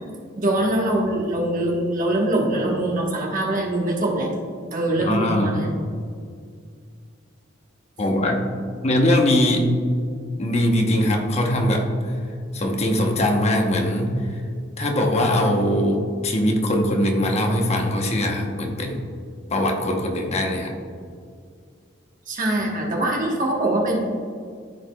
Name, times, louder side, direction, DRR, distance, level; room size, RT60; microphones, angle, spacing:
voice 1, 0.4-4.3 4.7-5.7 22.3-24.0, right 1 dB, 45° right, -1 dB, 1.2 m, -23 dB
voice 2, 5.1-5.6 8.0-8.4 8.8-9.7 10.4-11.9 12.5-14.3 14.8-19.0 19.5-20.7, left 1 dB, 35° left, 2 dB, 0.9 m, -21 dB
13.5 x 4.8 x 2.3 m, 2.2 s
head